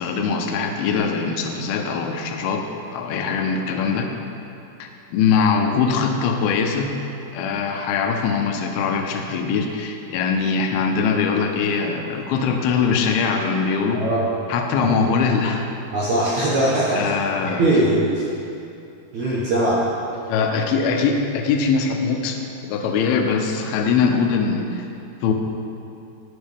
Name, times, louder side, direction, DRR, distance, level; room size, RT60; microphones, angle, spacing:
voice 1, 0.0-2.6 2.9-4.1 4.8-6.9 7.3-14.0 14.5-15.7 16.9-17.6 20.3-24.8 25.2-25.3, left 5 dB, 75° left, 3 dB, 2.3 m, -22 dB
voice 2, 13.9-14.3 14.8-14.9 15.9-17.1 17.4-18.3 19.1-19.9, right 1 dB, 75° right, -7 dB, 1.6 m, -20 dB
18.5 x 6.5 x 3.5 m, 2.7 s
omnidirectional pair, 5.2 m